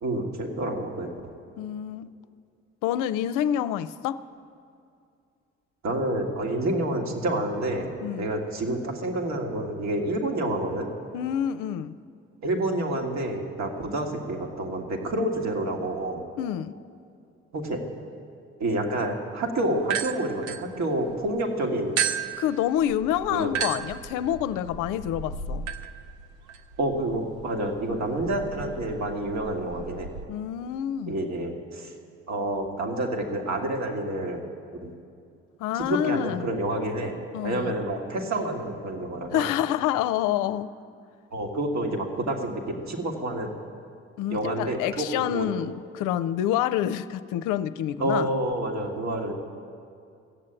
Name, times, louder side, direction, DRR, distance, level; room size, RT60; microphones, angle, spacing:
voice 1, 0.0-1.1 5.8-10.9 12.4-16.2 17.5-17.8 18.6-22.0 23.3-23.6 26.8-30.1 31.1-31.9 32.3-34.4 34.8-34.9 35.7-37.2 37.4-39.5 41.3-43.5 44.3-45.5 48.0-49.3, right 1 dB, 60° right, 3 dB, 1.8 m, -28 dB
voice 2, 1.6-2.1 2.8-4.2 8.0-8.3 11.1-12.0 16.4-16.7 22.4-25.6 30.3-31.1 35.6-36.5 37.3-37.8 39.3-40.7 44.2-48.3, left 11 dB, 75° left, 14 dB, 0.6 m, -27 dB
sound 1, 19.8-21.3 22.0-30.3, right 7 dB, 90° right, 0.6 m, -34 dB
15.0 x 7.6 x 8.9 m, 2.4 s
hypercardioid pair, 50°, 32 cm